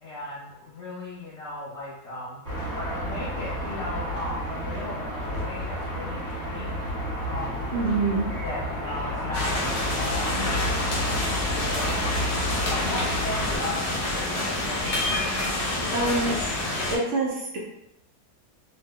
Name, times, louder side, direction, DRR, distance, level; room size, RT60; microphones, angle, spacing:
voice 1, 0.0-7.7 8.4-16.2, left 2 dB, 80° left, -7 dB, 0.6 m, -37 dB
sound 1, 2.4-13.6, equal, 30° right, 1.2 m, -31 dB
voice 2, 7.7-8.3 15.9-16.3 16.9-17.6, right 3 dB, 85° right, -3 dB, 0.6 m, -25 dB
sound 2, 9.3-17.0, left 1 dB, 50° left, 1.0 m, -28 dB
2.9 x 2.1 x 3.5 m, 0.85 s
omnidirectional pair, 1.9 m